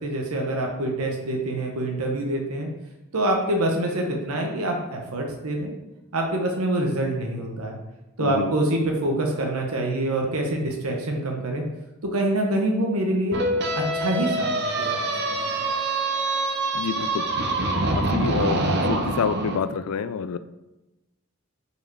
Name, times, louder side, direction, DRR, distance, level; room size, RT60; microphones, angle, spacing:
voice 1, 0.0-2.7 3.1-5.7 6.1-7.8 8.2-11.6 12.0-13.4 13.7-15.0 15.3-15.5, right 1 dB, 85° right, 1 dB, 1.0 m, -26 dB
voice 2, 8.2-8.5 16.7-17.2 17.9-18.6 18.9-20.4, left 6 dB, 85° left, 13 dB, 0.4 m, -27 dB
sound 1, 13.3-19.6, right 2 dB, 50° right, 0.8 m, -25 dB
5.0 x 5.0 x 4.7 m, 1.0 s
head